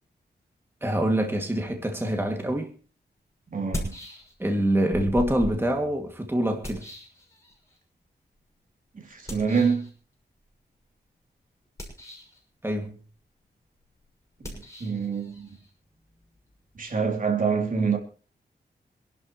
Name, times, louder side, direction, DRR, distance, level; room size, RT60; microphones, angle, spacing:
voice 1, 0.8-2.7 4.4-6.8 12.6-13.0, right 1 dB, 15° right, 2.3 m, -25 dB
sound 1, 2.6-2.7 3.5-4.6 4.9-7.8 9.3-9.9 11.6-12.4 14.4-17.0, left 1 dB, 15° left, 6.3 m, -38 dB
voice 2, 3.5-4.0 8.9-9.9 14.4-14.5 14.8-15.6 16.7-18.0, right 5 dB, 50° right, 3.2 m, -26 dB
26.5 x 11.5 x 3.1 m
wide cardioid pair, 105°, 18 cm